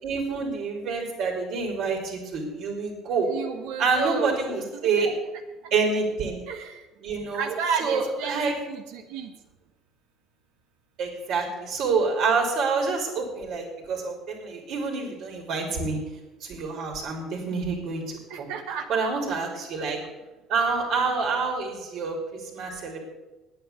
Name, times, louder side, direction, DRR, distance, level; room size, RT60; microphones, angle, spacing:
voice 1, 0.0-3.3 3.8-5.1 5.7-6.4 7.0-8.5 11.0-16.0 16.4-18.5 18.9-20.0 20.5-23.1, right 4 dB, 65° right, 1 dB, 3.4 m, -27 dB
voice 2, 3.3-4.4 5.0-5.1 6.5-6.7 7.3-8.4 8.7-9.3 18.3-19.0, right 6 dB, 85° right, 4 dB, 1.4 m, -31 dB
9.3 x 8.9 x 9.5 m, 1.1 s
cardioid pair, 105°, 0 cm